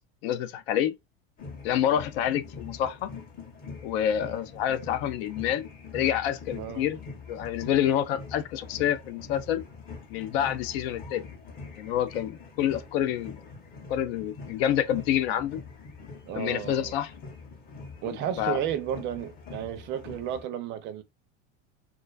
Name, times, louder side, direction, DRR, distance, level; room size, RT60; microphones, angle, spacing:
voice 1, 0.2-0.9 1.6-3.1 3.8-5.7 5.9-7.0 7.3-9.6 10.1-11.3 11.8-13.4 13.9-15.6 16.3-17.1 18.1-18.6, left 10 dB, 90° left, 0.5 m, -28 dB
sound 1, 1.4-20.4, left 4 dB, 30° left, 0.7 m, -44 dB
voice 2, 6.5-6.9 16.3-16.9 18.0-21.0, right 10 dB, 40° right, 0.4 m, -33 dB
2.4 x 2.3 x 2.3 m
cardioid pair, 150°, 30 cm